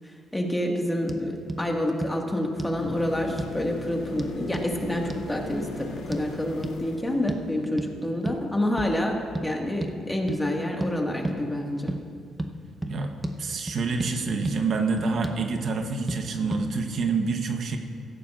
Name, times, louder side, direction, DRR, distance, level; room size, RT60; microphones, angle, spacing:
voice 1, 0.3-11.9, left 1 dB, 10° left, 1 dB, 1.7 m, -28 dB
sound 1, 1.1-1.2 1.5-1.6 2.0-2.1 2.6-2.8 3.4-3.6 4.2-4.7 5.1-5.3 6.1-6.3 6.6-6.8 7.3-7.5 7.8-7.9 8.3-8.4 8.8-9.0 9.4-9.5 9.8-9.9 10.3-10.4 10.8-10.9 11.2-11.4 11.9-12.0 12.4-12.5 12.8-13.0 13.2-13.4 13.7-14.1 14.5-14.6 15.0-15.4 16.1-16.2 16.5-16.6, right 1 dB, 15° right, 0.8 m, -32 dB
sound 2, 2.8-7.8 11.8-11.9, left 3 dB, 85° left, 1.8 m, -39 dB
voice 2, 13.4-17.8, right 4 dB, 60° right, 5 dB, 0.9 m, -27 dB
16.5 x 14.0 x 2.5 m, 2.2 s
cardioid pair, 90°, 0 cm